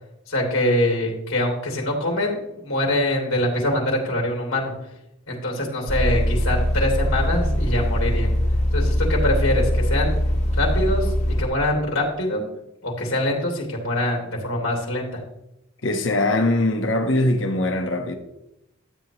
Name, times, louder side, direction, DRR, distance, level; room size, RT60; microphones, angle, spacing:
voice 1, 0.3-4.7 5.3-8.3 8.7-10.1 10.5-11.1 11.4-12.4 12.8-15.2, left 1 dB, 85° left, 3.2 m, -24 dB
sound 1, 5.9-11.4, equal, 35° left, 1.3 m, -22 dB
voice 2, 15.8-18.1, left 1 dB, 60° left, 1.2 m, -21 dB
13.0 x 9.1 x 3.0 m
head